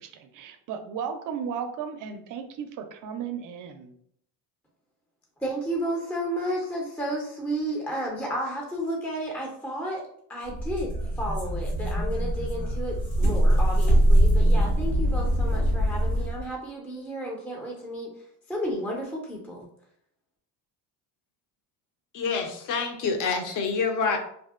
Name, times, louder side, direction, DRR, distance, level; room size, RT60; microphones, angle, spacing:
voice 1, 0.0-3.9, right 7 dB, 50° right, 8 dB, 0.4 m, -35 dB
voice 2, 5.4-10.0 10.3-18.1 18.5-19.7, right 1 dB, 5° left, -1 dB, 0.4 m, -32 dB
sound 1, 10.5-16.4, right 1 dB, 70° left, 1.4 m, -23 dB
voice 3, 22.1-24.2, left 5 dB, 50° left, 4 dB, 0.6 m, -27 dB
2.6 x 2.0 x 2.3 m, 0.67 s
supercardioid pair, 90°, 41 cm